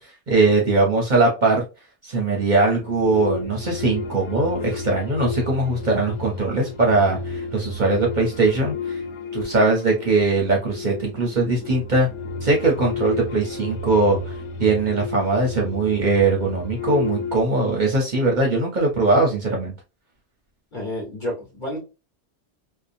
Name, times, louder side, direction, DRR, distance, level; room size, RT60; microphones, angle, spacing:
voice 1, 0.3-1.6 2.0-9.0 9.3-12.1 12.4-14.3 14.6-19.7, right 3 dB, 50° right, 0 dB, 0.7 m, -20 dB
sound 1, 2.7-17.4, left 4 dB, 85° left, 0.9 m, -32 dB
voice 2, 20.7-21.8, left 1 dB, 45° left, -1 dB, 1.3 m, -30 dB
2.8 x 2.1 x 2.5 m, 0.28 s
omnidirectional pair, 1.2 m